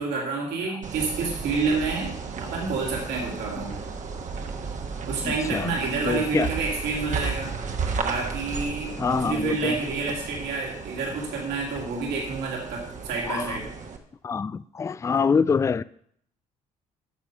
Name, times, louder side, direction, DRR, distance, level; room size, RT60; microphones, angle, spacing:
voice 1, 0.0-3.7 5.1-7.5 8.0-13.7, right 4 dB, 65° right, 2.4 m, -29 dB
sound 1, 0.8-14.0, right 5 dB, 45° right, 1.3 m, -34 dB
voice 2, 5.2-5.7 6.0-6.5 9.0-9.8 13.3-13.6 14.2-15.8, left 5 dB, 15° left, 0.3 m, -25 dB
9.9 x 6.5 x 5.8 m
hypercardioid pair, 50°, 18 cm